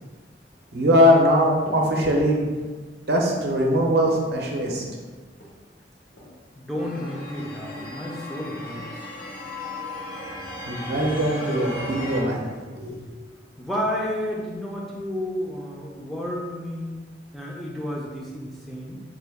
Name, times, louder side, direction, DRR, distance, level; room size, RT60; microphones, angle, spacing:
voice 1, 0.7-2.4 3.1-4.8 10.7-12.5 12.7-13.0, equal, 60° right, 0 dB, 0.6 m, -21 dB
sound 1, 1.6-1.9 2.3-2.7 3.1-3.4 3.9-4.1 4.6-5.6 6.2-6.4 6.7-7.2 7.8-8.0 8.6-8.8, left 1 dB, 85° left, 0.8 m, -43 dB
voice 2, 6.6-8.8 13.6-16.9 17.3-19.0, left 1 dB, ahead, -4 dB, 0.3 m, -31 dB
sound 2, 6.8-12.2, left 1 dB, 50° left, 0.6 m, -35 dB
3.6 x 2.2 x 3.4 m, 1.4 s
head